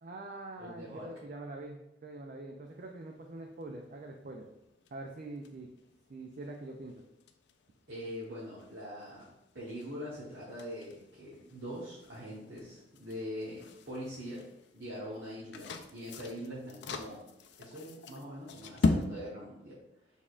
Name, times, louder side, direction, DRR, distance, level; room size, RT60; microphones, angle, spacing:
voice 1, 0.0-4.5 4.9-5.7 6.1-7.0, right 2 dB, 45° right, 2 dB, 0.4 m, -44 dB
voice 2, 0.6-1.1 7.9-9.3 9.5-14.4 14.7-17.2 17.6-19.8, equal, 65° right, -9 dB, 1.1 m, -43 dB
sound 1, 2.7-19.0, left 3 dB, 65° left, 0.4 m, -41 dB
6.2 x 3.5 x 2.4 m, 0.88 s
head